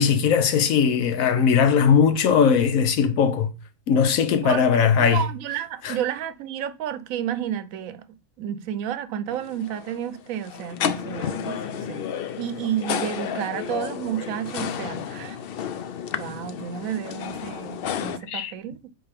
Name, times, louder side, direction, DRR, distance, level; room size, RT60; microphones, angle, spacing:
voice 1, 0.0-3.5 3.9-5.3 5.8-6.0 18.3-18.5, left 7 dB, 90° left, 1.2 m, -19 dB
voice 2, 4.4-8.0 8.4-12.0 12.4-15.4 16.2-18.9, right 10 dB, 90° right, 1.0 m, -31 dB
sound 1, 9.3-18.2, left 8 dB, 60° left, 0.6 m, -32 dB
8.0 x 3.7 x 3.4 m
omnidirectional pair, 1.4 m